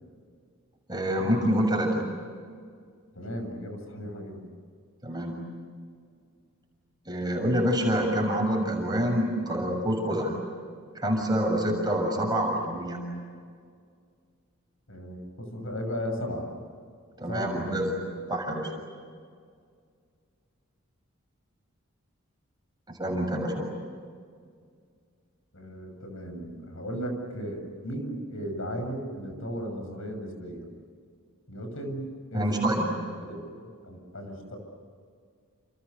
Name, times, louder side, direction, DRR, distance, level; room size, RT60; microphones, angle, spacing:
voice 1, 0.9-2.0 5.0-5.5 7.1-10.3 10.9-13.0 17.2-17.9 18.3-18.7 22.9-23.7 32.3-32.9, equal, 20° right, 1 dB, 6.9 m, -27 dB
voice 2, 3.1-4.5 14.9-16.5 17.3-17.8 25.5-30.7 31.5-32.9 33.2-34.6, equal, 65° left, 5 dB, 6.9 m, -36 dB
29.5 x 29.5 x 6.8 m, 2.1 s
head